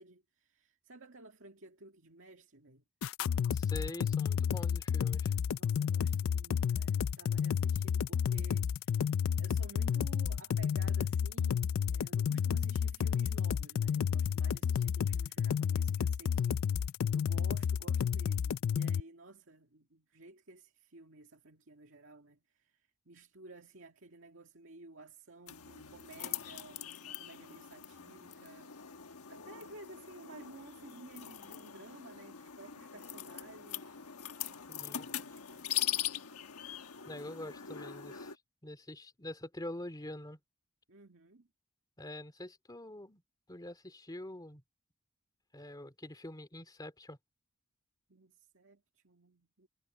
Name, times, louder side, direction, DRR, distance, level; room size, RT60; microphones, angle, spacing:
voice 1, 0.0-2.8 5.6-16.6 17.1-28.7 29.3-34.0 34.4-35.8 40.9-41.5 48.1-49.7, right 2 dB, 60° right, 2.2 m, -54 dB
sound 1, 3.0-19.0, left 7 dB, 65° left, 0.3 m, -31 dB
voice 2, 3.5-5.4 34.7-35.1 37.1-38.3 38.6-40.4 42.0-43.2 43.5-44.6 45.5-47.2, left 1 dB, 20° left, 2.4 m, -45 dB
sound 2, 25.5-38.4, left 10 dB, 85° left, 1.3 m, -42 dB
head